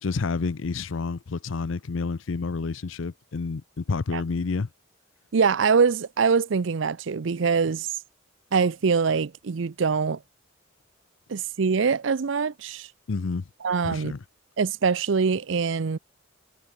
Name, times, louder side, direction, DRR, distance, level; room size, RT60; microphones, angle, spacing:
voice 1, 0.0-4.7 13.1-13.5 13.8-14.2, left 4 dB, 70° left, 0.6 m, -29 dB
voice 2, 5.3-7.9 8.5-10.2 11.3-12.9 13.6-14.1 14.6-16.0, right 5 dB, 65° right, 0.5 m, -23 dB
head